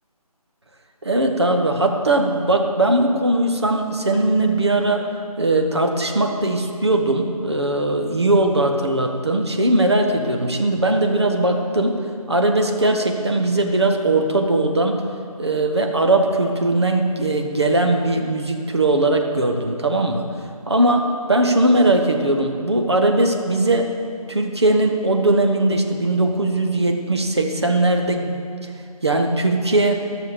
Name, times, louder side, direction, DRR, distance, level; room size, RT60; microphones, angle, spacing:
voice 1, 1.0-5.1 5.4-12.0 12.3-15.0 15.4-20.2 20.7-23.9 24.3-28.7 29.0-30.0, right 2 dB, 45° right, 3 dB, 1.1 m, -19 dB
13.5 x 6.5 x 6.7 m, 2.4 s
figure-of-eight pair, 180°, 20 cm